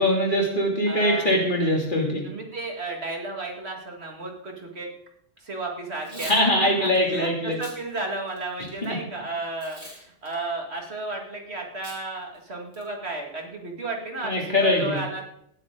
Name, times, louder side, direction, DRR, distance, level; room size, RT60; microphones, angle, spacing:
voice 1, 0.0-2.2 6.3-7.6 14.2-15.0, left 1 dB, 40° left, -1 dB, 3.1 m, -22 dB
voice 2, 0.9-1.4 2.2-4.9 5.4-15.2, right 2 dB, 60° right, 1 dB, 2.4 m, -33 dB
Packing tape duct tape / Tearing, 5.9-6.4 6.8-7.0 7.5-7.8 8.3-8.9 9.6-10.0 10.3-10.4 11.8-12.0 12.3-12.4 12.7-13.1, right 1 dB, 40° right, 4.8 m, -40 dB
17.5 x 8.8 x 3.9 m, 0.71 s
omnidirectional pair, 1.2 m